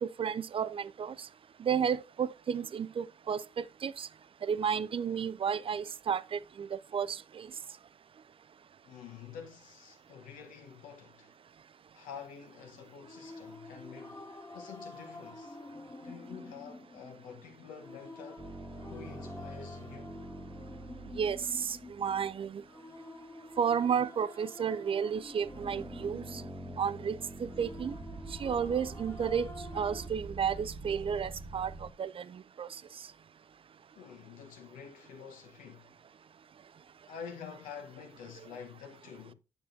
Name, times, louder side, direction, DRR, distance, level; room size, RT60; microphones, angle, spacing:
voice 1, 0.0-1.3 1.6-4.1 4.4-7.5 21.2-22.6 23.6-26.4 26.8-28.0 28.3-29.5 29.7-32.8, right 7 dB, 40° right, 0.4 m, -32 dB
voice 2, 8.8-11.3 11.9-14.3 14.5-15.6 15.9-18.5 18.9-20.3 33.9-35.9 37.1-39.3, left 7 dB, 80° left, 1.0 m, -48 dB
sound 1, 13.0-30.1, left 2 dB, 20° left, 1.3 m, -49 dB
sound 2, 18.4-22.5 25.1-31.9, right 2 dB, 20° right, 1.2 m, -45 dB
7.1 x 7.0 x 2.5 m
hypercardioid pair, 45°, 14 cm